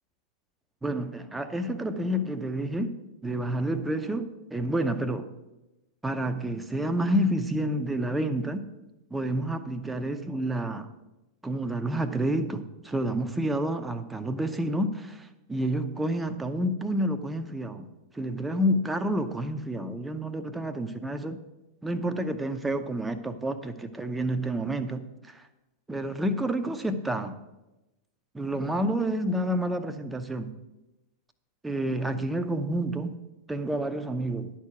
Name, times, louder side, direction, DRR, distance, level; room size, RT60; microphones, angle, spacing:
voice 1, 0.8-2.9 3.2-5.3 6.0-8.6 9.1-10.9 11.4-17.9 18.1-21.4 21.8-25.4 25.9-27.4 28.3-30.5 31.6-33.2 33.5-34.5, right 1 dB, 10° right, 9 dB, 0.8 m, -29 dB
11.5 x 4.6 x 7.9 m, 0.98 s
figure-of-eight pair, 90°, 0 cm